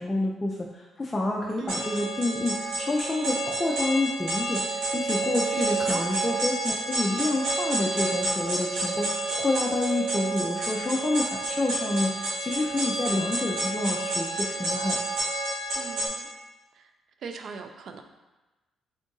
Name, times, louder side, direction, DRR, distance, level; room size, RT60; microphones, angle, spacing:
voice 1, 0.0-15.0, left 2 dB, 20° left, -2 dB, 0.4 m, -28 dB
voice 2, 1.6-2.0 5.5-6.1 15.8-16.3 17.2-18.0, right 5 dB, 65° right, 6 dB, 0.4 m, -38 dB
sound 1, 1.7-16.1, right 2 dB, 90° right, 1.3 m, -29 dB
3.6 x 2.5 x 3.8 m, 1.1 s
cardioid pair, 90°, 0 cm